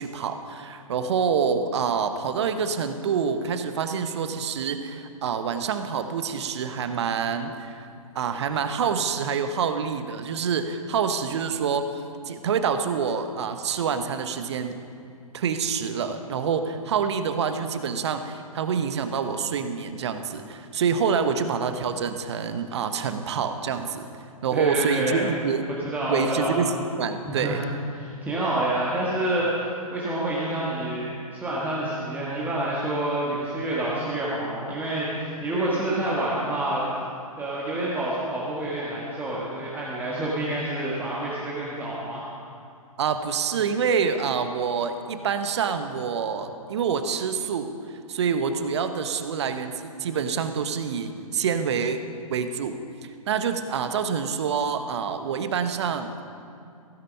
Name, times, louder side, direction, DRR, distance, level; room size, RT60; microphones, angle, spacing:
voice 1, 0.0-7.9 8.1-14.8 15.3-24.1 24.4-25.6 26.1-27.6 43.0-47.7 48.1-52.0 52.3-52.8 53.3-56.2, right 6 dB, 50° right, 9 dB, 0.9 m, -27 dB
voice 2, 24.5-25.2 25.8-26.6 27.2-27.6 27.9-37.0 37.4-42.2, right 1 dB, 10° right, -7 dB, 1.5 m, -28 dB
15.5 x 9.6 x 5.4 m, 2.5 s
figure-of-eight pair, 125°, 19 cm